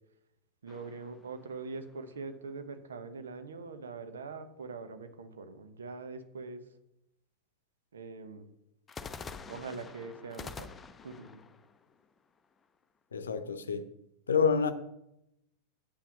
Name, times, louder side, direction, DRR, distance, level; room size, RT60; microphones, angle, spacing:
voice 1, 0.6-6.6 7.9-8.5 9.5-10.7 11.0-11.4, right 4 dB, 70° right, 0.9 m, -43 dB
sound 1, 0.7-2.1 8.9-12.8, left 5 dB, 20° left, 0.6 m, -47 dB
voice 2, 13.1-13.9 14.3-14.7, left 6 dB, 70° left, 0.7 m, -28 dB
8.4 x 5.7 x 6.2 m
figure-of-eight pair, 90°, 0 cm